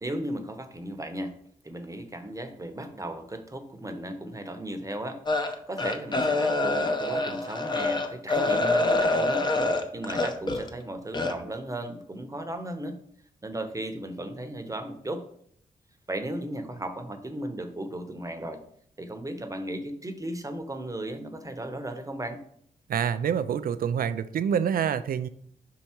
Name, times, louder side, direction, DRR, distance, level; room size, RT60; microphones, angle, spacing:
voice 1, 0.0-1.3 1.6-13.0 13.4-15.2 16.1-18.6 19.0-22.4, right 1 dB, 20° right, 7 dB, 1.0 m, -36 dB
sound 1, 5.3-10.7 11.1-11.3, left 2 dB, 30° left, 0.8 m, -26 dB
voice 2, 22.9-25.3, right 8 dB, 70° right, 13 dB, 0.5 m, -26 dB
5.2 x 4.7 x 4.4 m, 0.65 s
supercardioid pair, 50°, 16 cm